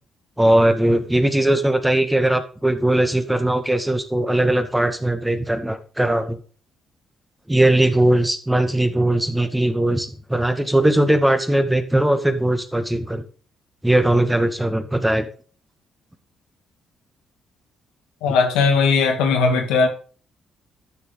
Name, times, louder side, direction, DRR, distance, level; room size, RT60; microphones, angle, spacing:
voice 1, 0.4-6.4 7.5-13.2 13.8-15.3, right 1 dB, 10° right, 2.0 m, -19 dB
voice 2, 18.2-19.9, left 4 dB, 80° left, 2.2 m, -18 dB
12.5 x 6.3 x 5.2 m
hypercardioid pair, 50°, 0 cm